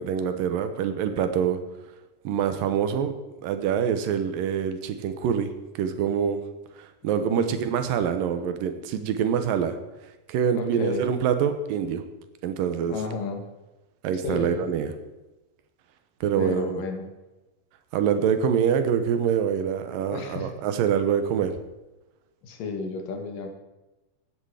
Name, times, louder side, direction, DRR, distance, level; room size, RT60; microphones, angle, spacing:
voice 1, 0.0-1.6 2.2-3.1 3.4-5.5 5.8-6.4 6.8-9.8 10.3-12.0 12.4-13.0 14.0-14.9 16.2-16.8 17.9-21.5, right 8 dB, 80° right, 9 dB, 2.7 m, -25 dB
voice 2, 10.5-11.1 12.9-13.5 14.2-14.7 16.4-17.1 20.1-20.5 22.4-23.5, left 4 dB, 75° left, 4 dB, 3.3 m, -32 dB
15.0 x 10.0 x 4.9 m, 1.1 s
omnidirectional pair, 3.9 m